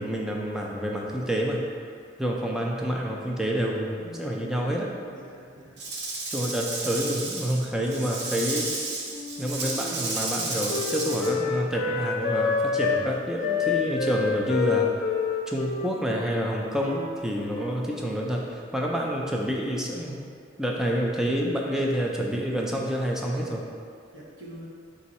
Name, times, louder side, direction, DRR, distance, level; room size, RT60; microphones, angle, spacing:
voice 1, 0.0-1.6 2.2-4.9 6.3-8.7 9.4-14.9 15.5-18.5 18.7-20.2 20.6-23.6, equal, 5° right, -2 dB, 0.3 m, -28 dB
voice 2, 4.0-4.8 5.1-5.8 24.1-24.7, right 1 dB, 85° right, -4 dB, 0.9 m, -44 dB
Rattle / Rattle (instrument), 5.8-11.3, right 3 dB, 60° right, 0.6 m, -32 dB
Wind instrument woodwind instrument, 9.1-13.0 13.4-17.8, left 6 dB, 70° left, 0.5 m, -29 dB
3.9 x 2.6 x 4.1 m, 2.2 s
head